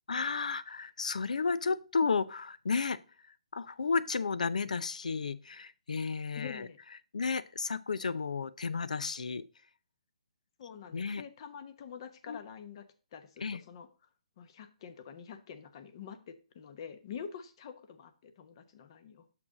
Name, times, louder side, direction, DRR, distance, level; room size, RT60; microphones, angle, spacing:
voice 1, 0.1-3.0 3.5-6.7 7.1-9.4 10.9-11.2 12.3-12.4 13.4-13.6, left 4 dB, 80° left, 16 dB, 0.5 m, -32 dB
voice 2, 6.3-6.8 10.6-12.9 13.1-13.9 14.4-19.3, left 7 dB, 40° left, 10 dB, 0.9 m, -46 dB
6.3 x 6.0 x 3.9 m, 0.35 s
hypercardioid pair, 150°, 4 cm